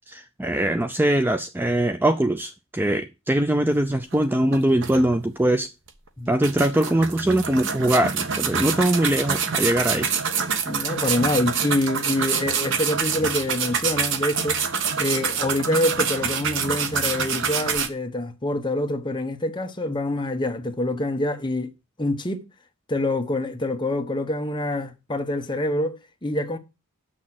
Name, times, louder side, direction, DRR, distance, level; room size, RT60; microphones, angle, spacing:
voice 1, 0.1-5.7 6.3-10.1, right 1 dB, 10° right, 0.4 m, -22 dB
sound 1, 4.1-4.2 4.5-5.4 5.9-6.0 6.4-17.9, right 6 dB, 55° right, 1.2 m, -26 dB
voice 2, 10.7-14.6 15.0-21.7 22.0-22.4 22.9-26.6, left 1 dB, 20° left, 1.0 m, -26 dB
7.3 x 6.3 x 7.7 m
head